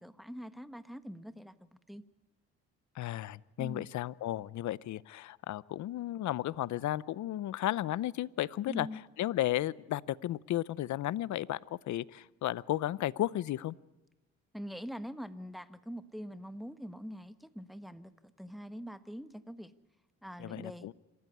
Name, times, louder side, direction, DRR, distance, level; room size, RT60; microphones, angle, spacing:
voice 1, 0.0-2.0 3.6-3.9 8.7-9.0 14.5-19.7 20.2-20.9, equal, ahead, 12 dB, 1.3 m, -44 dB
voice 2, 3.0-8.9 9.2-11.6 11.9-13.7 20.4-20.9, left 14 dB, 70° left, 21 dB, 0.7 m, -34 dB
26.5 x 14.0 x 9.8 m, 1.1 s
cardioid pair, 90°, 30 cm